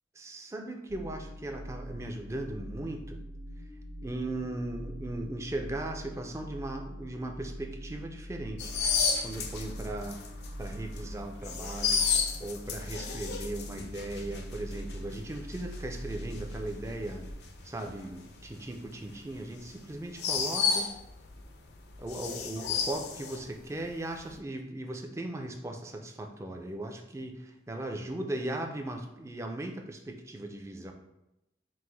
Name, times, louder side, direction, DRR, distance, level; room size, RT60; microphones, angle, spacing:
voice 1, 0.2-3.2 4.0-8.7 9.2-10.2 10.6-12.0 12.4-17.2 17.6-20.9 22.0-30.9, right 1 dB, 15° right, 3 dB, 0.4 m, -38 dB
sound 1, 0.9-17.3, equal, 70° right, 1.5 m, -43 dB
dog max whine howl bark, 8.6-21.4 21.7-23.9 24.1-24.4, left 6 dB, 70° left, 0.4 m, -33 dB
4.7 x 2.1 x 3.8 m, 0.90 s
head